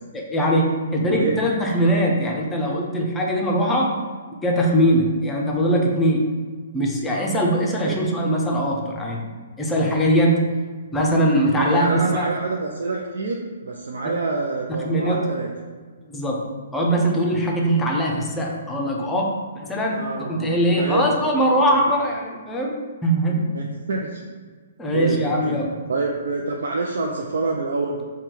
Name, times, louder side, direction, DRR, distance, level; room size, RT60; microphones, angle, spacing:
voice 1, 0.1-4.0 4.4-6.2 6.7-9.2 9.6-10.4 10.9-12.3 14.0-14.1 14.8-15.3 16.1-16.4 16.7-20.0 20.3-22.8 23.0-23.5 24.8-25.7, equal, 10° left, -1 dB, 0.5 m, -21 dB
voice 2, 1.0-1.4 7.8-8.0 11.5-15.5 19.9-21.1 21.7-21.9 23.5-24.2 24.9-25.6 25.9-28.0, right 3 dB, 80° right, 0 dB, 0.4 m, -27 dB
3.6 x 2.2 x 4.4 m, 1.5 s
hypercardioid pair, 155°, 0 cm